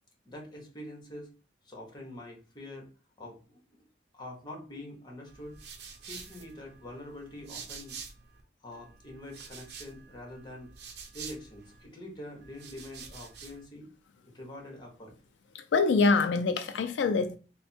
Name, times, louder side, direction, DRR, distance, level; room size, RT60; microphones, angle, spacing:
voice 1, 0.2-1.3 1.6-2.9 3.2-3.6 4.1-5.6 6.1-8.0 8.6-10.7 11.1-13.9 14.2-15.1, left 1 dB, 25° left, 1.1 m, -45 dB
sound 1, 5.3-8.4 8.7-11.9 12.4-13.6, right 6 dB, 65° right, 0.7 m, -47 dB
voice 2, 15.5-17.4, left 4 dB, 85° left, 0.3 m, -25 dB
3.4 x 2.1 x 4.2 m
head